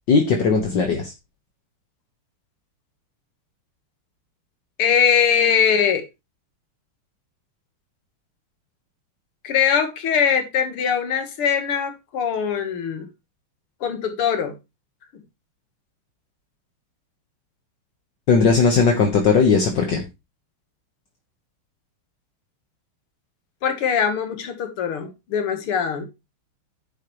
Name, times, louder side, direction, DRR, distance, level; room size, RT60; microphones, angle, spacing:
voice 1, 0.1-1.1 18.3-20.0, left 5 dB, 60° left, 1.8 m, -18 dB
voice 2, 4.8-6.0 9.4-13.1 13.8-14.6 23.6-26.1, left 7 dB, 85° left, 2.4 m, -21 dB
10.5 x 7.8 x 3.1 m
omnidirectional pair, 2.3 m